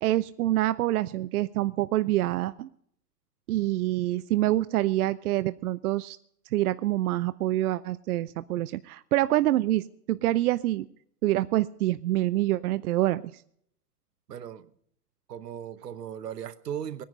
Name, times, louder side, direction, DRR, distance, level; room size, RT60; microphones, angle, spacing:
voice 1, 0.0-2.7 3.5-6.2 6.5-10.9 11.2-13.4, right 15 dB, 65° right, 0.6 m, -26 dB
voice 2, 14.3-14.7 15.3-17.0, right 9 dB, 85° right, 1.1 m, -37 dB
19.5 x 10.5 x 5.3 m
hypercardioid pair, 120°, 47 cm